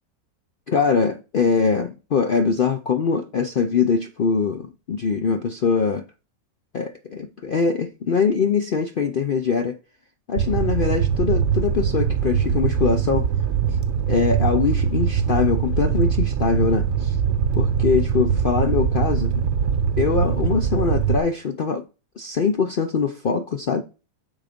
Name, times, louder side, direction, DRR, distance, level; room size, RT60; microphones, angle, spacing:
voice 1, 0.7-6.0 6.7-9.8 10.3-13.3 14.1-17.2 17.5-19.3 20.0-21.8 22.2-23.8, left 5 dB, 75° left, 0.5 m, -22 dB
Fire, 10.4-21.2, right 7 dB, 55° right, 0.9 m, -22 dB
7.3 x 4.0 x 5.0 m
omnidirectional pair, 1.7 m